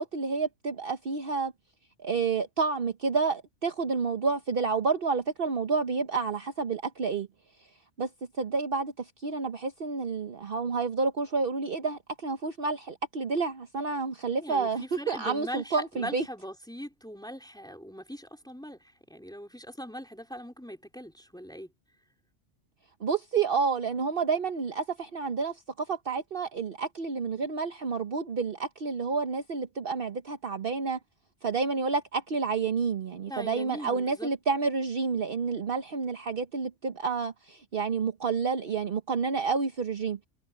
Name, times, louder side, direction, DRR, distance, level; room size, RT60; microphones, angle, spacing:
voice 1, 0.0-1.5 2.0-7.3 8.0-8.1 8.4-16.2 23.0-31.0 31.4-40.2, right 4 dB, 50° right, 1.2 m, -29 dB
voice 2, 14.4-21.7 33.3-34.3, equal, 5° left, 3.7 m, -41 dB
omnidirectional pair, 1.3 m